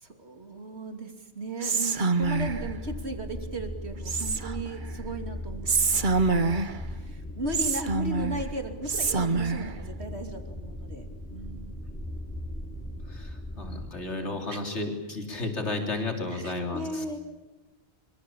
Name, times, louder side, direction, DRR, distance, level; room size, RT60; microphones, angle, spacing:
voice 1, 0.0-11.9 14.5-14.9 16.3-17.2, right 1 dB, 70° right, 6 dB, 3.1 m, -37 dB
Whispering, 1.6-2.7 4.1-4.7 5.7-6.8 7.5-8.4 8.9-9.7, right 4 dB, 45° right, 1.3 m, -26 dB
sound 1, 2.2-13.9, left 1 dB, 10° left, 4.1 m, -38 dB
voice 2, 13.1-17.0, left 2 dB, 85° left, 4 dB, 3.9 m, -33 dB
26.0 x 24.5 x 8.7 m, 1.1 s
omnidirectional pair, 1.1 m